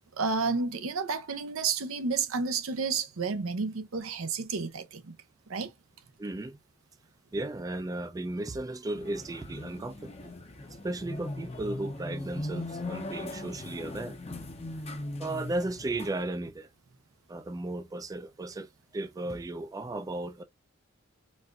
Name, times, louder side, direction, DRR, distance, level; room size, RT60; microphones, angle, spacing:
voice 1, 0.2-5.2 5.5-5.7, right 4 dB, 90° right, 0.7 m, -31 dB
voice 2, 6.2-6.6 7.3-10.3 10.8-14.2 15.2-16.7 17.3-20.4, right 2 dB, 15° right, 0.3 m, -35 dB
sound 1, 8.9-16.2, left 2 dB, 30° left, 0.6 m, -39 dB
4.1 x 2.4 x 2.3 m
head